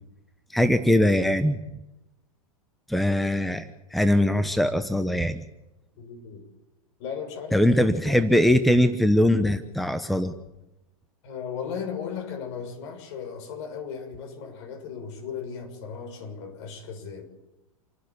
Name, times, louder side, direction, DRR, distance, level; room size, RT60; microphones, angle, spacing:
voice 1, 0.5-1.6 2.9-5.4 7.5-10.3, left 1 dB, ahead, 10 dB, 1.0 m, -21 dB
voice 2, 6.0-6.4 7.0-8.3 11.2-17.2, left 6 dB, 55° left, 5 dB, 6.6 m, -36 dB
28.5 x 12.0 x 8.7 m, 0.95 s
hypercardioid pair, 105°, 18 cm